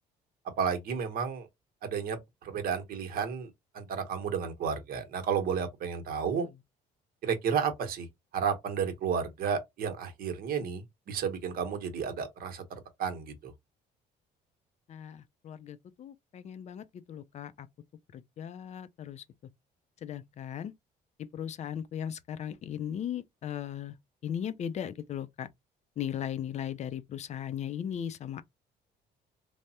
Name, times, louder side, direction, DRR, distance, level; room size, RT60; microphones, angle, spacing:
voice 1, 0.6-1.5 1.8-6.5 7.2-8.1 8.3-12.6 13.0-13.5, right 7 dB, 60° right, 0.9 m, -32 dB
voice 2, 14.9-17.7 18.1-19.2 20.0-20.7 21.3-23.9 24.2-25.5 26.0-28.4, left 9 dB, 45° left, 0.4 m, -37 dB
3.4 x 2.0 x 2.7 m
cardioid pair, 110°, 17 cm